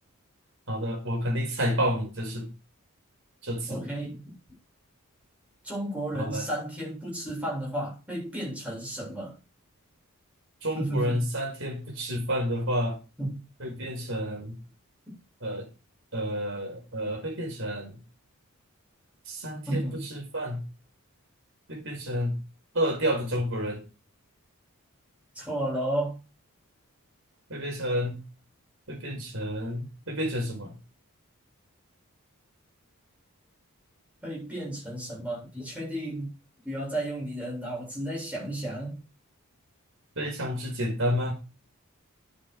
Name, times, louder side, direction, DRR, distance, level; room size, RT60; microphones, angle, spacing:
voice 1, 0.7-2.5 3.4-3.8 6.1-6.5 10.6-13.0 13.6-14.6 15.4-15.7 16.1-18.0 19.3-20.6 21.7-22.4 22.7-23.8 27.5-28.2 28.9-30.7 40.2-41.3, equal, 60° right, 5.4 m, -30 dB
voice 2, 3.7-4.3 5.6-9.3 10.7-11.3 13.2-13.4 19.7-20.0 25.3-26.2 34.2-36.3 36.6-39.0, right 1 dB, 5° right, 7.9 m, -33 dB
10.5 x 8.1 x 5.0 m
head